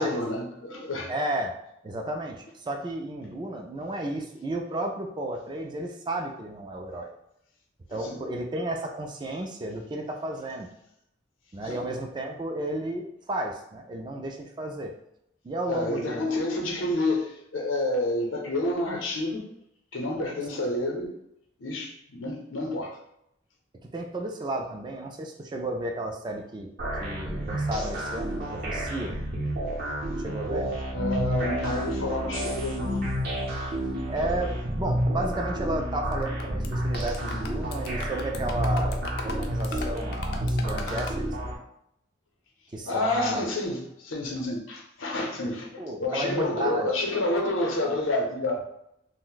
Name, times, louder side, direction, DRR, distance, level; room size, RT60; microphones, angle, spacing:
voice 1, 0.0-1.1 7.9-8.2 11.6-11.8 15.7-19.4 19.9-21.2 21.6-23.0 30.9-33.0 42.8-48.6, left 1 dB, 85° left, 1 dB, 0.7 m, -29 dB
voice 2, 1.1-1.5 1.8-7.1 7.9-10.7 11.5-14.9 15.4-16.3 23.8-26.7 27.0-29.2 30.2-30.7 34.1-39.0 39.2-41.5 42.7-43.4 45.4-46.9, right 1 dB, 25° right, 2 dB, 0.3 m, -33 dB
sound 1, 26.8-41.6, equal, 50° right, 0.6 m, -30 dB
sound 2, 36.1-36.7 36.9-41.2, left 4 dB, 55° left, 0.4 m, -38 dB
2.5 x 2.1 x 3.8 m, 0.78 s
head